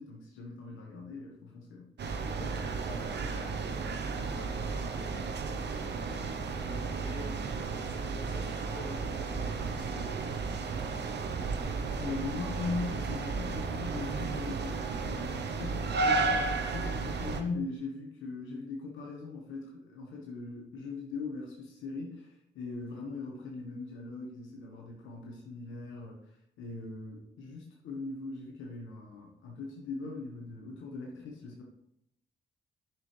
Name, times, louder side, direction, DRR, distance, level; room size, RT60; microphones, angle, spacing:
voice 1, 0.0-1.9 12.0-31.6, left 3 dB, 80° left, -1 dB, 1.3 m, -40 dB
sound 1, 2.0-17.4, right 4 dB, 60° right, 0.9 m, -33 dB
voice 2, 2.4-11.3, left 2 dB, 25° left, -2 dB, 2.9 m, -49 dB
7.3 x 6.2 x 3.2 m, 0.76 s
supercardioid pair, 45°, 20 cm